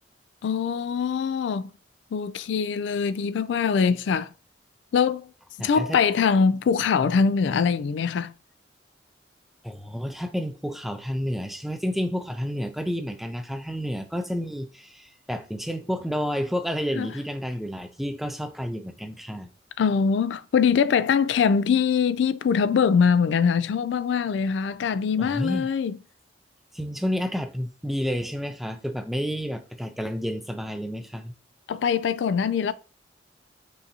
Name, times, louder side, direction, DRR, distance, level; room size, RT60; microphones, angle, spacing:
voice 1, 0.4-1.7 2.1-4.3 4.9-5.3 5.6-8.3 17.0-17.1 19.8-26.0 31.7-32.7, left 6 dB, 75° left, 0.3 m, -23 dB
voice 2, 5.6-6.0 9.6-19.5 25.2-25.7 26.7-31.3, equal, ahead, 0.4 m, -30 dB
5.4 x 2.7 x 2.8 m
head